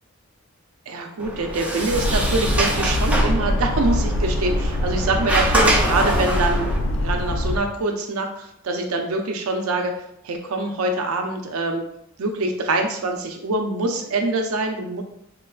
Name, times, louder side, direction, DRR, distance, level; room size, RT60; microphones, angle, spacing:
voice 1, 0.9-9.9 10.2-11.8 12.2-15.0, right 2 dB, 80° right, 4 dB, 0.5 m, -24 dB
Sliding door, 1.2-6.8, right 1 dB, 5° right, 0.3 m, -25 dB
sound 1, 1.9-7.6, left 1 dB, 70° left, 0.4 m, -23 dB
3.7 x 2.2 x 2.4 m, 0.76 s
head